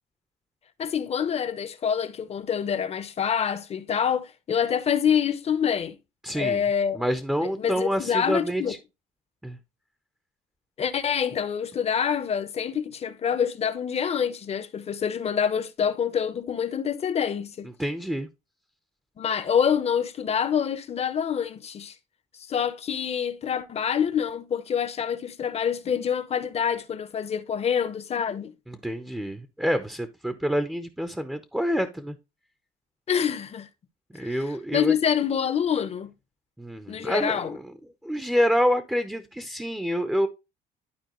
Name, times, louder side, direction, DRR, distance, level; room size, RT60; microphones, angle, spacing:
voice 1, 0.8-6.0 6.3-7.1 7.4-8.7 10.8-17.7 19.2-21.9 22.5-28.5 33.1-33.7 34.2-34.3 34.7-36.1 36.9-37.6, left 7 dB, 40° left, 0.8 m, -26 dB
voice 2, 6.2-6.6 6.9-8.8 9.4-9.6 17.8-18.3 28.7-32.2 34.1-34.9 36.6-37.6 38.0-40.3, equal, 5° right, 0.7 m, -27 dB
11.5 x 4.4 x 3.0 m
cardioid pair, 110°, 17 cm